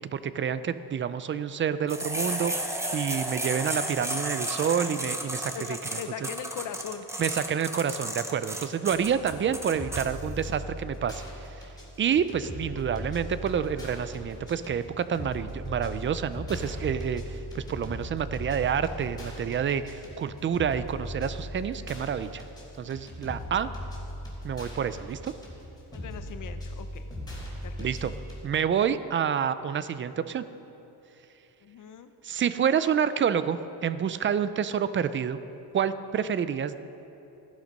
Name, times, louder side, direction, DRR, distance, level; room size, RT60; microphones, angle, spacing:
voice 1, 0.0-5.5 7.2-11.2 11.6-11.7 12.0-22.4 22.8-23.7 24.4-25.3 27.8-28.1 28.4-30.4 32.2-35.4 35.7-36.7, right 8 dB, 30° right, 13 dB, 0.4 m, -28 dB
sound 1, 1.9-10.1, right 1 dB, 5° right, 0.9 m, -33 dB
voice 2, 5.5-7.1 25.9-27.1 27.6-27.9 31.6-32.1, left 8 dB, 50° left, 9 dB, 0.8 m, -39 dB
sound 2, 8.9-28.4, left 1 dB, 10° left, 3.5 m, -39 dB
15.0 x 11.5 x 5.3 m, 3.0 s
cardioid pair, 160°, 41 cm